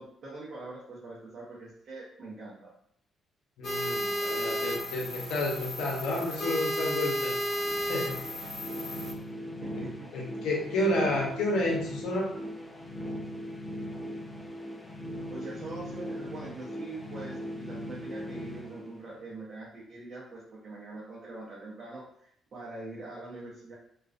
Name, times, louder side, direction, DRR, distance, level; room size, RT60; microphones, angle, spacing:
voice 1, 0.0-2.7 9.6-10.2 15.3-23.7, right 2 dB, 55° right, -6 dB, 0.7 m, -43 dB
voice 2, 3.6-7.3 7.9-8.2 9.7-9.8 10.1-12.4, left 1 dB, 90° left, -2 dB, 0.6 m, -30 dB
sound 1, 3.6-9.1, equal, 50° left, 0.9 m, -33 dB
sound 2, 7.6-19.5, equal, 20° left, 0.3 m, -39 dB
2.4 x 2.2 x 2.4 m, 0.70 s
cardioid pair, 90°, 0 cm